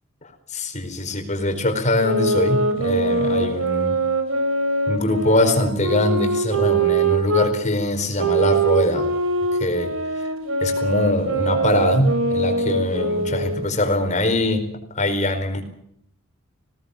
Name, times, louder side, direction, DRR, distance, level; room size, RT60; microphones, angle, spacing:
voice 1, 0.5-3.9 4.9-9.1 9.6-9.9 10.6-14.6 14.9-15.6, left 1 dB, 35° left, 5 dB, 4.7 m, -22 dB
sound 1, 2.0-7.5 8.2-13.7, right 3 dB, 90° right, 4.7 m, -23 dB
21.5 x 18.5 x 8.6 m, 0.69 s
head